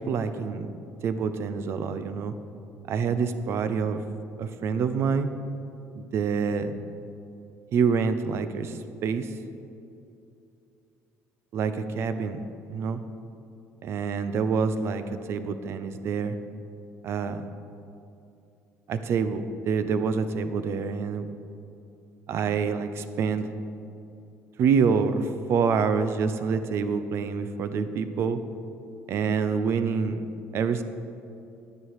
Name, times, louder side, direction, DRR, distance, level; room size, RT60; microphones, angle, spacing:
voice 1, 0.1-0.7 1.0-2.3 2.9-4.0 4.4-5.3 6.0-6.8 7.7-9.3 11.5-12.4 12.7-13.0 13.8-15.0 15.3-16.4 17.0-17.4 18.9-21.3 22.3-23.5 24.6-28.4 29.1-30.3 30.5-30.8, right 5 dB, 50° right, 11 dB, 0.6 m, -26 dB
10.5 x 9.5 x 4.8 m, 2.7 s
cardioid pair, 155°, 5 cm